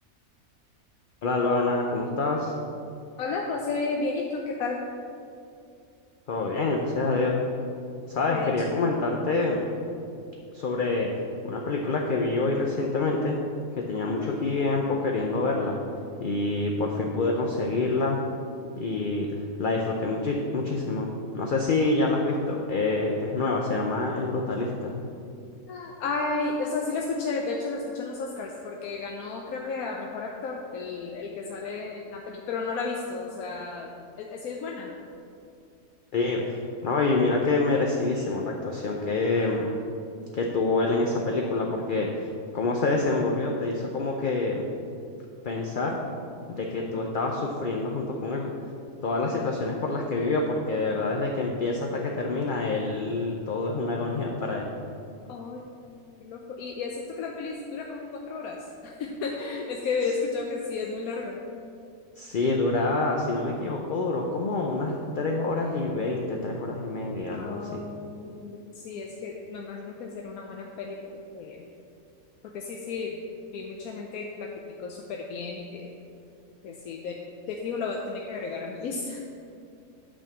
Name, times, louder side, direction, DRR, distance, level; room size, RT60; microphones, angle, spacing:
voice 1, 1.2-2.5 6.3-7.3 8.1-9.7 10.5-11.1 11.4-13.4 13.9-15.8 16.2-18.2 18.8-19.3 19.6-21.1 21.3-24.9 36.1-39.7 40.3-42.3 42.5-44.6 45.4-46.0 46.5-48.5 49.0-54.7 62.2-67.8, left 3 dB, 50° left, 0 dB, 0.6 m, -27 dB
voice 2, 3.2-4.8 8.3-8.5 14.1-14.4 25.7-34.9 39.3-39.7 46.9-47.0 55.3-55.7 56.2-61.4 67.3-71.6 72.5-73.2 73.5-74.5 74.8-75.9 76.6-77.2 77.5-79.2, left 4 dB, 85° left, 0 dB, 1.1 m, -33 dB
8.8 x 4.4 x 6.8 m, 2.5 s
omnidirectional pair, 1.5 m